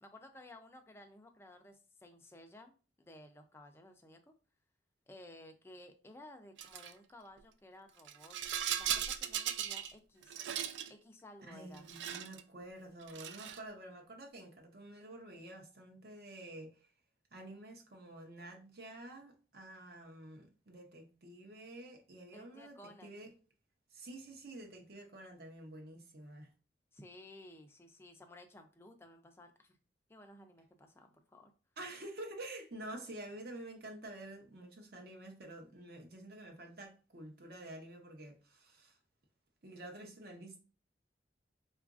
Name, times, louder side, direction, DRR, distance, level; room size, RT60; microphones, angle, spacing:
voice 1, 0.0-4.3 5.1-8.4 8.8-10.4 10.9-11.9 22.3-23.2 26.9-29.8 30.1-31.5, left 1 dB, 15° left, 0.4 m, -56 dB
Rattle, 6.6-6.9 8.0-9.9 10.2-10.9 11.7-12.4 13.0-13.7, right 10 dB, 80° right, 0.3 m, -38 dB
voice 2, 11.5-16.9 17.3-23.3 23.9-26.5 31.8-39.0 39.6-40.6, right 1 dB, 60° right, 0.7 m, -49 dB
3.8 x 2.4 x 2.4 m
head